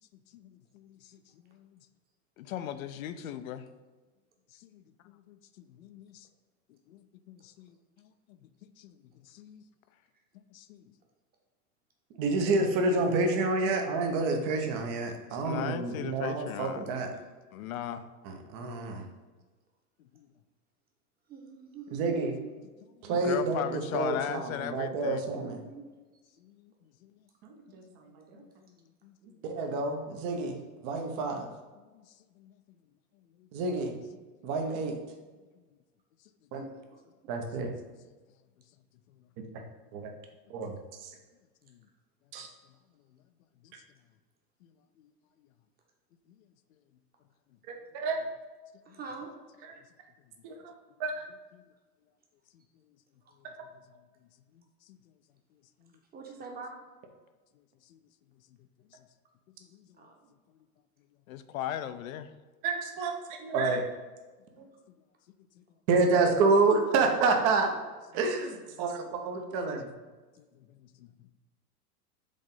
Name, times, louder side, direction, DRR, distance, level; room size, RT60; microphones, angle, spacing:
voice 1, 0.3-1.8 2.4-3.6 4.5-6.3 6.9-9.0 9.2-9.6 10.5-10.8 15.4-16.8 17.5-18.0 20.1-20.3 23.1-25.2 26.4-26.7 27.0-27.1 28.1-28.7 29.0-29.2 31.9-32.1 32.4-32.5 33.4-33.5 36.5-36.6 41.6-41.8 43.6-43.7 44.6-44.7 45.0-45.1 48.9-49.0 51.5-51.6 54.5-54.6 54.9-55.0 55.8-55.9 57.9-58.0 59.7-59.8 61.3-62.3 64.6-64.7 69.4-69.5 70.4-71.1, left 11 dB, 60° left, 11 dB, 0.6 m, -40 dB
voice 2, 12.2-17.1 18.2-19.0 21.9-22.3 23.1-25.6 27.7-28.4 29.4-30.6 30.8-31.5 33.5-34.0 34.4-35.0 36.5-36.7 37.3-37.7 39.9-40.1 40.5-41.1 42.3-42.5 47.9-48.2 50.4-50.7 51.0-51.2 53.4-53.5 62.6-63.8 64.6-64.7 65.9-67.7 68.1-69.9, right 3 dB, 45° right, 4 dB, 1.1 m, -28 dB
voice 3, 21.3-22.5 25.0-25.1 25.4-25.8 36.7-37.0 48.8-49.3 56.1-56.7 60.0-60.3, right 5 dB, 20° right, 1 dB, 1.2 m, -45 dB
5.3 x 3.8 x 5.5 m, 1.3 s
hypercardioid pair, 105°, 47 cm